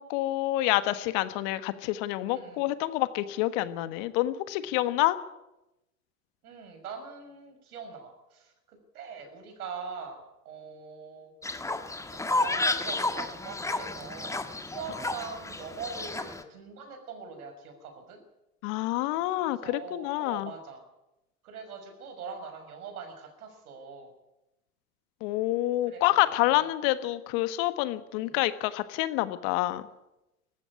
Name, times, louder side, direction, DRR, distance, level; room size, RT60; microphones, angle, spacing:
voice 1, 0.0-5.2 18.6-20.5 25.2-29.8, left 16 dB, 55° left, 13 dB, 1.5 m, -27 dB
voice 2, 2.3-2.7 6.4-11.3 12.0-18.2 19.4-20.8 21.4-24.1 25.8-26.6 28.1-28.4, right 5 dB, 75° right, 6 dB, 6.2 m, -43 dB
Fowl, 11.4-16.4, left 2 dB, 5° left, 1.5 m, -31 dB
19.0 x 14.5 x 9.7 m, 0.93 s
hypercardioid pair, 100°, 44 cm